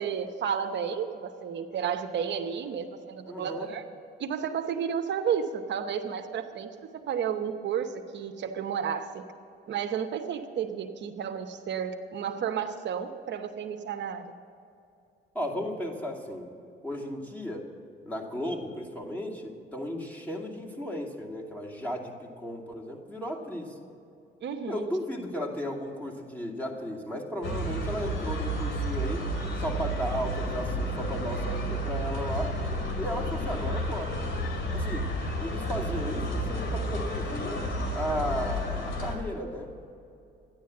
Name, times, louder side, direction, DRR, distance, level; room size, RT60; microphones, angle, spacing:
voice 1, 0.0-3.8 4.2-9.2 9.7-14.3 24.4-24.9, right 7 dB, 65° right, 5 dB, 0.9 m, -32 dB
voice 2, 3.3-3.7 15.3-16.5 16.8-17.6 18.0-23.8 24.7-29.3 29.6-32.5 33.0-34.1 34.7-35.1 35.4-37.7 37.9-39.9, equal, 5° left, -2 dB, 2.5 m, -35 dB
sound 1, 27.4-39.2, equal, 75° left, 2.5 m, -31 dB
13.0 x 10.5 x 7.6 m, 2.6 s
cardioid pair, 90°, 20 cm